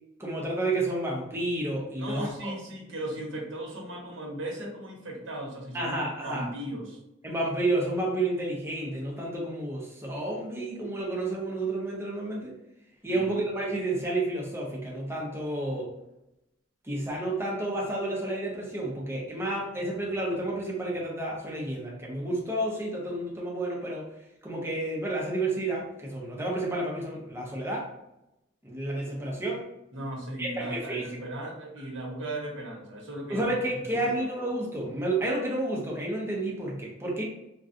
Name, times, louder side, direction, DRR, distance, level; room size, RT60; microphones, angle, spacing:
voice 1, 0.2-2.5 5.7-6.5 7.2-12.6 13.0-15.9 16.8-24.1 24.4-27.9 28.6-29.7 30.4-31.2 33.3-37.2, right 2 dB, 15° right, -3 dB, 0.7 m, -30 dB
voice 2, 2.0-5.9 6.2-7.0 13.1-13.3 29.9-33.5 33.8-34.0, right 1 dB, 75° right, -2 dB, 1.0 m, -37 dB
3.7 x 2.3 x 2.6 m, 0.89 s
head